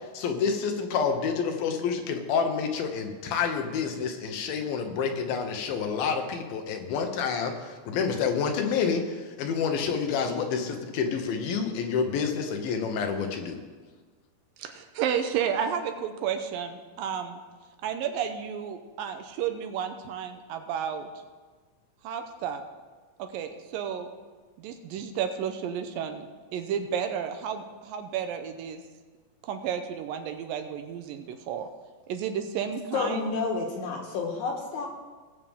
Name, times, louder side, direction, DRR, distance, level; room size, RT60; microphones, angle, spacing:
voice 1, 0.1-13.6, left 6 dB, 80° left, 5 dB, 2.8 m, -28 dB
voice 2, 14.6-17.4 17.8-21.1 22.0-22.6 23.2-24.1 24.6-28.8 29.4-31.7 32.1-33.3, right 8 dB, 80° right, 7 dB, 2.4 m, -32 dB
voice 3, 32.9-34.9, left 4 dB, 60° left, 1 dB, 2.6 m, -30 dB
19.5 x 7.4 x 3.6 m, 1.4 s
omnidirectional pair, 4.2 m